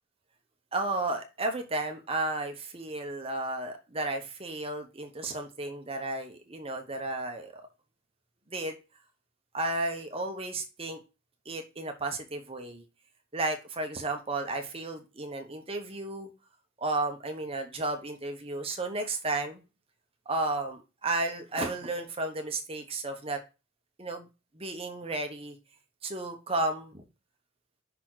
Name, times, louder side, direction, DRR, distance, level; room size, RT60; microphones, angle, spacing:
voice 1, 0.7-7.6 8.5-8.8 9.5-11.0 11.4-12.8 13.3-16.3 16.8-19.6 20.3-23.4 24.0-24.3 24.5-25.6 26.0-27.0, right 2 dB, 25° right, 4 dB, 1.0 m, -33 dB
5.8 x 4.2 x 6.2 m, 0.30 s
head